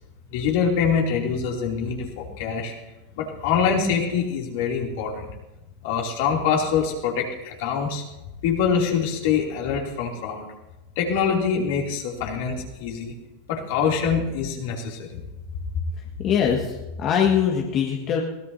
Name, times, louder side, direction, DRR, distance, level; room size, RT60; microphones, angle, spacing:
voice 1, 0.3-2.7 3.2-5.3 5.8-8.0 8.4-10.5 11.0-13.1 13.5-15.2, left 6 dB, 60° left, -1 dB, 2.9 m, -24 dB
voice 2, 16.2-18.2, left 8 dB, 40° left, 0 dB, 1.8 m, -22 dB
22.0 x 17.0 x 2.8 m, 1.0 s
hypercardioid pair, 100°, 0 cm